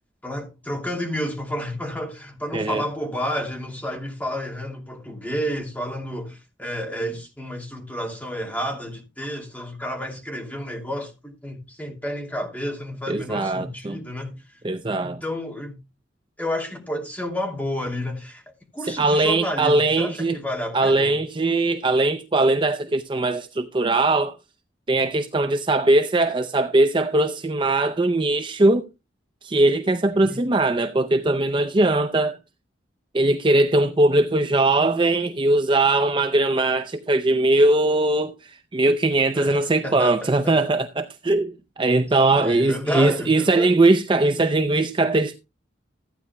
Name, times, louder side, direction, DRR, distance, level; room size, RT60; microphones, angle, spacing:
voice 1, 0.2-14.4 15.0-15.8 16.4-18.4 18.7-21.2 30.3-30.4 39.3-40.8 42.3-43.8, equal, 10° left, 2.7 m, -31 dB
voice 2, 2.5-2.8 13.1-14.0 14.6-15.2 18.9-20.4 20.7-24.4 24.9-28.9 29.4-32.4 33.1-45.4, right 2 dB, 25° right, 0.5 m, -20 dB
15.0 x 9.4 x 2.3 m
head